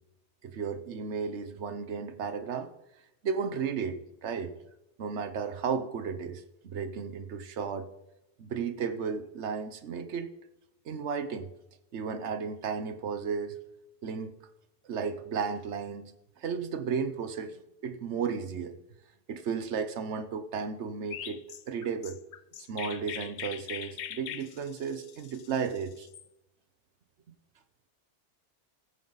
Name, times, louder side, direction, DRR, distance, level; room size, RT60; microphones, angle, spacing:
voice 1, 0.4-2.7 3.2-4.5 5.0-7.9 8.4-10.3 10.8-11.5 11.9-13.6 14.0-14.3 14.8-18.8 19.3-22.2 22.6-26.1, right 6 dB, 75° right, 10 dB, 1.2 m, -34 dB
Chirp tweet, 21.1-26.2, left 9 dB, 55° left, 0.5 m, -42 dB
16.0 x 9.5 x 4.0 m, 0.90 s
omnidirectional pair, 1.2 m